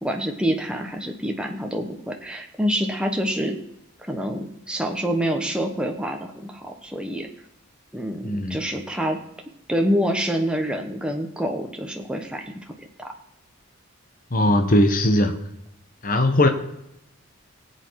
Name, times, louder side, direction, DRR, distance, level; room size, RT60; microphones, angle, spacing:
voice 1, 0.0-3.6 4.0-7.3 7.9-9.2 9.7-13.1, equal, 5° right, 2 dB, 1.1 m, -27 dB
voice 2, 8.2-8.6 14.3-15.4 16.0-16.5, left 1 dB, 40° left, 6 dB, 1.2 m, -19 dB
20.0 x 8.0 x 4.7 m, 0.83 s
head